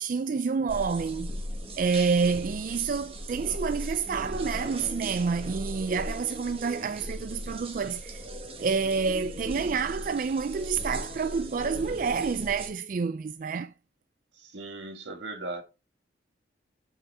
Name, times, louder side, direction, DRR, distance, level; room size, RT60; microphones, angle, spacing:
voice 1, 0.0-1.3 1.7-8.3 8.6-13.7, right 5 dB, 45° right, 0.3 m, -28 dB
sound 1, 0.7-12.7, equal, 30° right, 1.3 m, -38 dB
voice 2, 14.3-15.6, right 2 dB, 80° right, 1.8 m, -38 dB
7.0 x 5.6 x 3.3 m
head